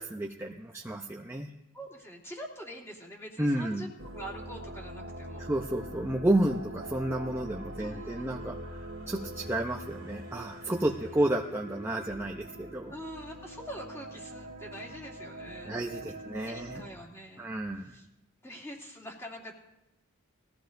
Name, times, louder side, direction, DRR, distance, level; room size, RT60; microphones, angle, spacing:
voice 1, 0.0-1.5 3.4-3.8 5.5-8.8 9.1-12.9 15.7-16.8 17.4-18.0, right 1 dB, 10° right, 1 dB, 0.6 m, -31 dB
voice 2, 1.7-5.5 7.8-8.5 12.9-15.7 16.2-17.5 17.8-18.1 18.4-19.5, equal, 10° left, -3 dB, 2.5 m, -45 dB
sound 1, 4.0-16.9, right 1 dB, 80° right, 1.8 m, -43 dB
20.5 x 15.0 x 2.6 m, 0.90 s
head